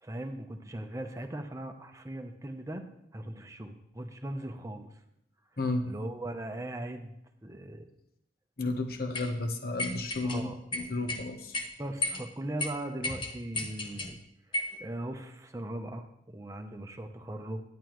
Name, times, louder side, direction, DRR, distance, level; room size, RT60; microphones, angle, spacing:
voice 1, 0.0-2.8 3.1-4.9 5.8-7.9 10.2-10.6 11.8-14.2 14.8-17.6, right 1 dB, 15° right, 5 dB, 0.7 m, -39 dB
voice 2, 5.6-5.9 8.6-10.5 10.7-11.5, left 2 dB, 50° left, 6 dB, 1.0 m, -32 dB
sound 1, 9.1-9.3 9.8-10.4 10.7-11.2 11.5-11.7 12.0-12.2 12.6-12.7 13.0-14.1 14.5-14.8, left 2 dB, 25° left, 0.9 m, -33 dB
10.5 x 10.5 x 3.1 m, 0.76 s
head